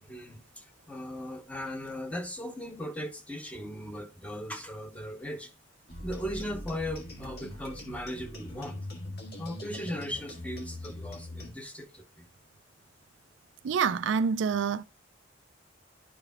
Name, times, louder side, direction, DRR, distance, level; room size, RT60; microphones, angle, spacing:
voice 1, 0.0-5.5 6.0-8.8 9.4-12.2, equal, 5° left, 1.0 m, -38 dB
sound 1, 5.9-11.5, left 1 dB, 55° left, 1.8 m, -42 dB
voice 2, 13.6-14.8, right 6 dB, 70° right, 0.4 m, -27 dB
11.0 x 4.9 x 2.3 m
head